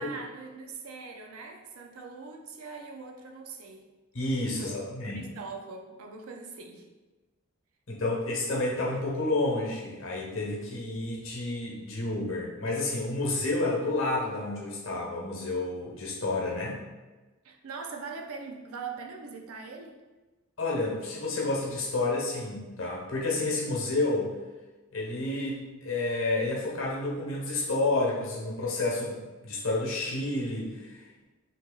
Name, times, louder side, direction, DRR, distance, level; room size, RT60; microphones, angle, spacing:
voice 1, 0.0-3.9 4.5-4.7 5.0-6.9 17.4-20.0, right 4 dB, 85° right, 3 dB, 0.5 m, -42 dB
voice 2, 4.1-5.2 7.9-16.8 20.6-24.3 24.9-31.2, left 2 dB, 65° left, -3 dB, 0.9 m, -30 dB
2.8 x 2.8 x 3.7 m, 1.2 s
head